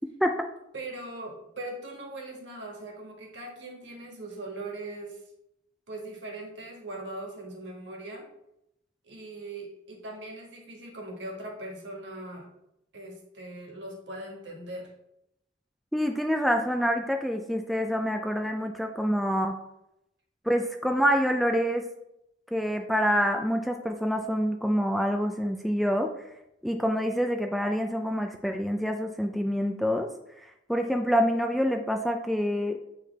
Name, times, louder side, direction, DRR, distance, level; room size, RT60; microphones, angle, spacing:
voice 1, 0.7-5.2 5.9-8.3 9.0-12.5 12.9-14.9, right 2 dB, 70° right, 0 dB, 1.5 m, -40 dB
voice 2, 15.9-19.5 20.5-21.8 22.5-26.1 26.6-30.1 30.7-32.8, equal, ahead, 3 dB, 0.3 m, -26 dB
8.5 x 3.3 x 3.3 m, 0.82 s
head